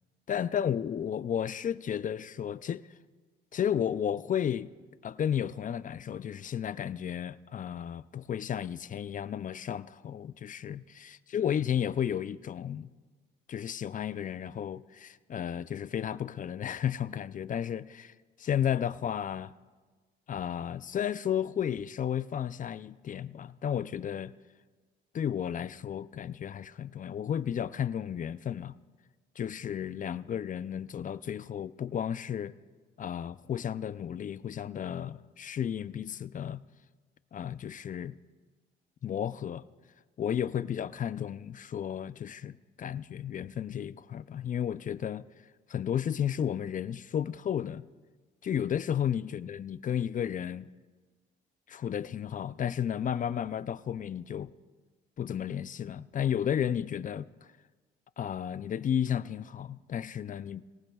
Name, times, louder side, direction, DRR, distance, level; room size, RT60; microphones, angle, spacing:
voice 1, 0.3-2.9 3.5-4.7 5.0-12.9 13.5-18.1 18.4-19.5 20.3-24.3 25.1-28.8 29.4-32.5 33.0-36.6 37.3-38.2 39.0-39.6 40.2-45.3 45.7-47.9 48.4-50.7 51.7-54.5 55.2-57.3 58.2-60.6, left 9 dB, 40° left, 0.4 m, -33 dB
24.0 x 18.0 x 2.3 m
cardioid pair, 90°, 20 cm